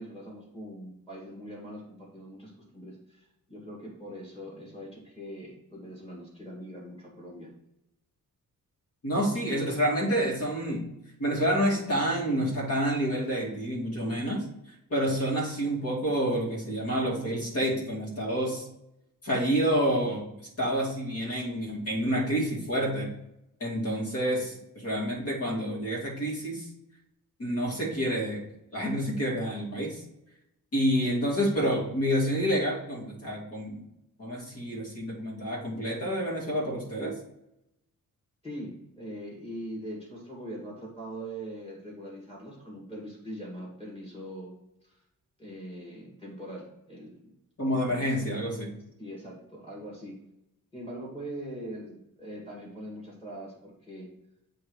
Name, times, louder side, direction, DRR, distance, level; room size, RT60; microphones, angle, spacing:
voice 1, 0.0-7.5 38.4-44.5 44.8-45.0 45.4-47.3 47.7-48.1 49.0-50.2 50.7-54.1, right 1 dB, 15° left, -4 dB, 2.1 m, -42 dB
voice 2, 9.0-10.8 11.2-14.5 14.9-18.7 19.2-20.3 20.6-23.1 23.6-26.7 27.4-28.5 28.7-30.0 30.7-33.8 34.2-37.2 47.6-48.8, equal, 45° left, -3 dB, 2.1 m, -28 dB
8.3 x 2.8 x 4.7 m, 0.85 s
wide cardioid pair, 145°, 34 cm